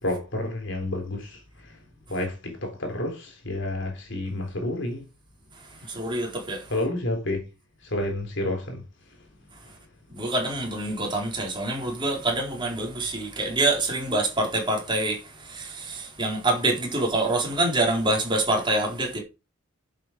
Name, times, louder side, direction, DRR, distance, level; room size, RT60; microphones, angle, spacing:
voice 1, 0.0-1.7 2.1-5.0 6.7-7.4 7.8-8.8, left 1 dB, 60° left, 3.8 m, -30 dB
voice 2, 5.8-6.7 10.1-19.2, right 2 dB, 25° right, 4.2 m, -26 dB
10.5 x 7.9 x 5.1 m
head